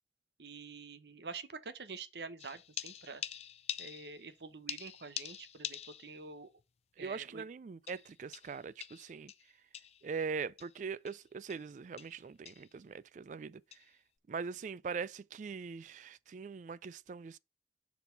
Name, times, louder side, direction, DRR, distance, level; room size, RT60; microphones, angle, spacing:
voice 1, 0.4-3.2 3.8-6.5 7.0-7.5, right 4 dB, 70° right, 0.9 m, -47 dB
sound 1, 2.4-4.4 4.7-6.3 6.6-6.7 7.9-10.1 10.6-10.7 11.1-11.2 11.5-11.7 12.0-12.2 12.5-12.7 13.7-13.9, left 10 dB, 35° left, 0.4 m, -45 dB
voice 2, 7.0-9.3 10.0-13.8 14.3-17.4, right 5 dB, 45° right, 0.3 m, -41 dB
6.9 x 4.1 x 5.6 m
head